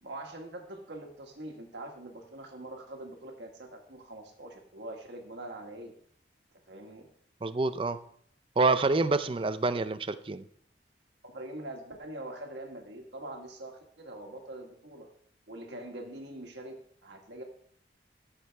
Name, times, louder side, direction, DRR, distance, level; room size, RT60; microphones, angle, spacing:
voice 1, 0.0-5.9 6.7-7.1 11.2-15.1 15.5-17.4, right 1 dB, 70° right, 2 dB, 1.6 m, -43 dB
voice 2, 7.4-8.0 8.6-10.4, right 3 dB, 30° right, 12 dB, 0.4 m, -27 dB
13.5 x 6.4 x 3.4 m, 0.63 s
head